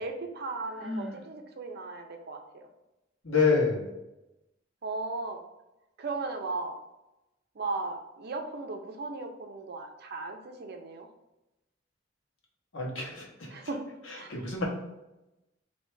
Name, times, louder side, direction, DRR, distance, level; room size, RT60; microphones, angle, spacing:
voice 1, 0.0-2.4 4.8-5.4 6.0-6.8 7.6-11.1 13.5-13.8 14.1-14.3, right 3 dB, 55° right, 4 dB, 0.6 m, -36 dB
Sigh, 0.6-1.3, left 1 dB, ahead, 1.4 m, -37 dB
voice 2, 3.2-3.9 12.7-13.5 14.1-14.6, left 4 dB, 80° left, -3 dB, 1.2 m, -27 dB
3.3 x 2.8 x 4.6 m, 0.95 s
head